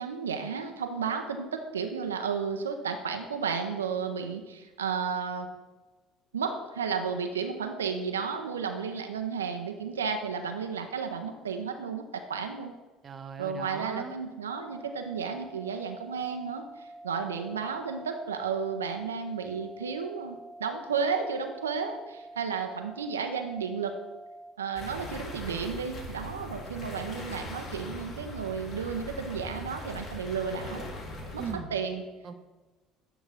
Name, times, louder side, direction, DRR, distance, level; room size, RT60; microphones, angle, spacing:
voice 1, 0.0-5.5 6.3-12.7 13.4-23.9 24.6-30.9 31.3-31.4 31.7-32.0, right 6 dB, 90° right, 5 dB, 0.5 m, -33 dB
voice 2, 13.0-14.1 31.4-31.7 32.2-32.3, right 6 dB, 40° right, 8 dB, 0.8 m, -39 dB
sound 1, 14.5-24.5, right 2 dB, 10° right, 1.7 m, -47 dB
sound 2, 24.8-31.5, left 1 dB, 50° left, 1.8 m, -40 dB
8.7 x 3.9 x 4.7 m, 1.2 s
hypercardioid pair, 65°, 0 cm